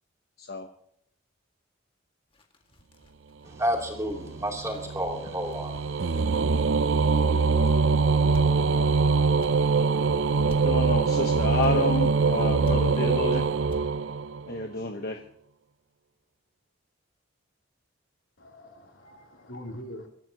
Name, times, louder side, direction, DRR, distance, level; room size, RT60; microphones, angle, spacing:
voice 1, 0.4-0.7 7.2-7.5 10.6-13.4 14.5-15.2, left 3 dB, 50° left, 1.1 m, -30 dB
sound 1, 2.3-7.9 8.3-8.4 8.8-8.9 9.4-9.5 10.5-10.6 11.6-11.7 12.0-12.2 12.6-12.8 13.2-13.3 13.7-13.8 14.1-14.2, equal, 25° left, 2.0 m, -47 dB
voice 2, 3.4-6.2, equal, 15° right, 3.2 m, -31 dB
sound 2, 3.7-14.6, right 4 dB, 70° right, 0.6 m, -24 dB
voice 3, 18.4-20.1, equal, 85° left, 3.5 m, -43 dB
25.5 x 14.0 x 3.0 m
head